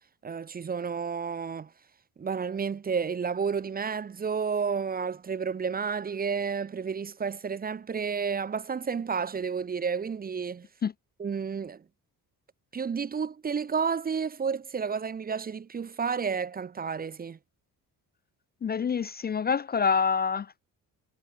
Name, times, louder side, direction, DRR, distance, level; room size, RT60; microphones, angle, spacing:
voice 1, 0.2-1.7 2.2-10.6 11.2-11.8 12.7-17.4, right 6 dB, 25° right, 0.7 m, -31 dB
voice 2, 18.6-20.5, left 6 dB, 30° left, 0.5 m, -26 dB
cardioid pair, 135°, 34 cm